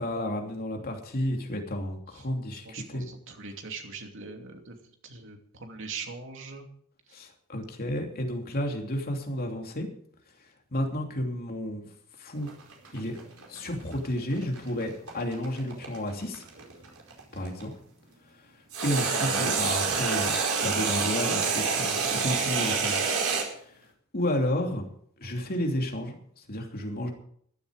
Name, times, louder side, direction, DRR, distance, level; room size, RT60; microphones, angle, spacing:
voice 1, 0.0-3.1 7.1-9.9 10.7-11.9 12.2-12.5 12.9-13.2 13.5-16.5 17.3-17.7 18.8-23.0 23.5-23.8 24.1-24.9 25.2-27.1, left 1 dB, 45° left, 2 dB, 2.9 m, -31 dB
voice 2, 2.6-4.8 5.0-6.7 19.2-19.5, right 4 dB, 65° right, 4 dB, 2.8 m, -40 dB
sound 1, 12.4-17.6 18.7-23.5, right 5 dB, 90° right, 4.7 m, -28 dB
15.5 x 12.5 x 5.1 m, 0.63 s
head